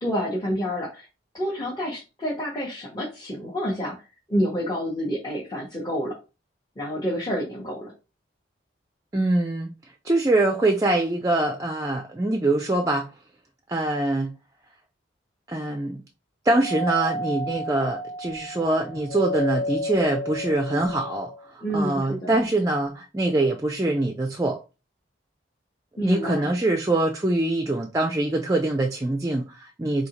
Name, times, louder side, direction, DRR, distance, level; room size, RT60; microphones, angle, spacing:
voice 1, 0.0-1.1 1.3-4.0 4.3-6.2 6.8-7.9 21.6-22.4 26.0-26.5, equal, 20° left, 0.8 m, -28 dB
voice 2, 9.1-9.7 10.0-13.1 13.7-14.3 15.5-16.0 16.4-21.3 21.7-24.6 26.0-30.1, right 2 dB, 15° right, 0.4 m, -24 dB
Doorbell, 16.6-21.4, left 1 dB, 80° left, 2.0 m, -31 dB
4.0 x 2.8 x 2.9 m
head